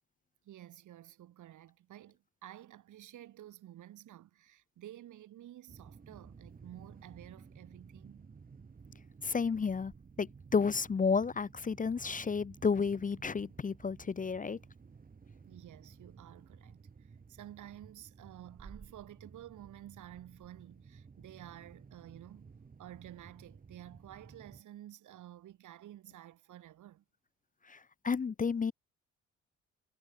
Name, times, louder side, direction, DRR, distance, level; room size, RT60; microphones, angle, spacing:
voice 1, 0.4-8.3 15.4-22.5 22.8-27.0, right 13 dB, 75° right, 4.7 m, -52 dB
sound 1, 5.7-24.6, right 5 dB, 30° right, 1.5 m, -55 dB
voice 2, 9.2-9.9 10.2-14.6 27.7-28.7, left 5 dB, 25° left, 0.8 m, -32 dB
cardioid pair, 90°, 30 cm